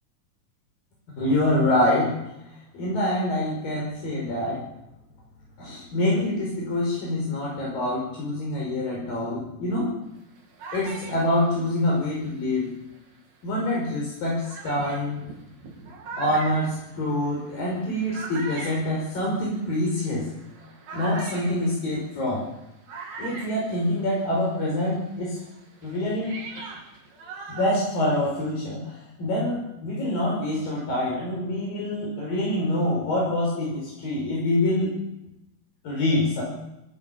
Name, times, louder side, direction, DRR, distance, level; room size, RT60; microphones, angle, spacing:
voice 1, 1.2-2.1 2.7-4.6 5.6-9.9 10.7-12.7 13.4-15.2 16.2-20.3 20.9-22.4 23.2-25.4 25.8-26.3 27.5-34.9 35.8-36.4, left 1 dB, 70° left, -3 dB, 7.4 m, -25 dB
sound 1, 10.1-13.2 13.8-13.9 14.4-24.5 24.7-28.5, right 3 dB, 70° right, 5.1 m, -41 dB
26.5 x 15.5 x 7.3 m, 0.89 s
omnidirectional pair, 4.2 m